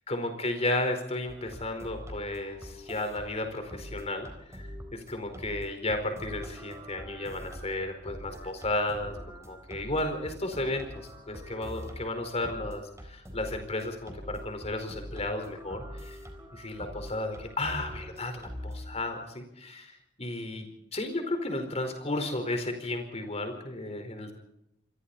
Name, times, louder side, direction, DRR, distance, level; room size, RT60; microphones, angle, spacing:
voice 1, 0.1-12.8 13.1-16.2 16.5-20.7 20.9-24.3, left 2 dB, 35° left, 6 dB, 4.6 m, -33 dB
sound 1, 1.3-19.0, equal, 15° right, 4.2 m, -44 dB
28.0 x 22.5 x 4.3 m, 0.82 s
head